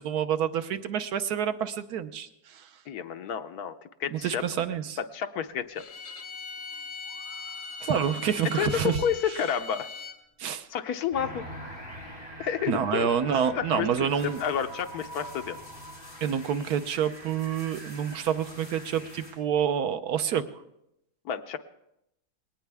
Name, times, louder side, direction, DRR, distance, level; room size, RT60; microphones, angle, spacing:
voice 1, 0.0-2.7 4.1-5.0 7.8-9.0 10.4-10.7 12.7-14.4 16.2-20.4, right 8 dB, 75° right, 9 dB, 1.3 m, -28 dB
voice 2, 2.9-4.4 5.0-5.8 8.5-9.9 10.7-11.5 12.4-13.1 13.6-15.6 21.2-21.6, left 8 dB, 75° left, 8 dB, 1.3 m, -30 dB
Bowed string instrument, 5.7-10.2, left 5 dB, 55° left, 1.6 m, -40 dB
sound 1, 7.0-10.2 11.6-18.3, right 2 dB, 20° right, 0.9 m, -49 dB
sound 2, 11.1-19.3, equal, 35° left, 4.2 m, -45 dB
20.5 x 18.0 x 3.5 m, 0.83 s
omnidirectional pair, 1.7 m